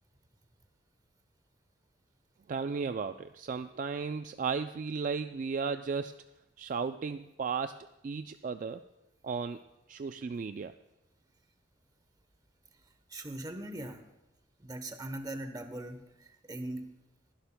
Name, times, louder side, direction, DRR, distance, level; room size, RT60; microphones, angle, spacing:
voice 1, 2.5-6.1 6.6-8.8 9.2-9.6 9.9-10.7, right 5 dB, 45° right, 9 dB, 0.3 m, -35 dB
voice 2, 13.1-14.0 14.6-16.9, right 1 dB, 20° right, 8 dB, 0.9 m, -40 dB
22.5 x 11.5 x 2.2 m, 0.94 s
head